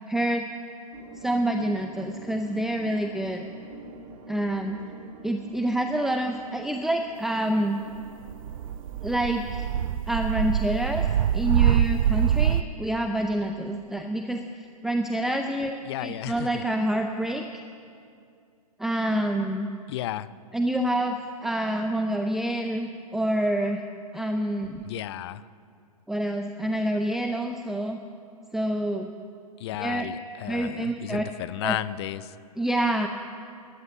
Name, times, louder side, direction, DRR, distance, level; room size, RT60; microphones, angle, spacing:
voice 1, 0.1-0.5 1.2-3.4 4.3-4.8 5.2-7.8 9.0-9.7 10.1-11.1 11.3-15.7 16.0-17.4 18.8-19.7 20.5-23.8 24.1-24.8 26.1-28.0 28.5-29.1 29.8-30.1 30.5-31.2 31.6-31.8 32.6-33.1, right 1 dB, ahead, 5 dB, 0.5 m, -27 dB
sound 1, 0.9-9.9, right 2 dB, 40° right, 1.7 m, -45 dB
sound 2, 8.3-12.6, right 10 dB, 60° right, 0.4 m, -24 dB
voice 2, 15.9-16.6 19.9-20.3 24.8-25.5 29.6-32.3, left 14 dB, 45° left, 17 dB, 0.6 m, -33 dB
13.0 x 11.0 x 9.2 m, 2.4 s
figure-of-eight pair, 120°, 19 cm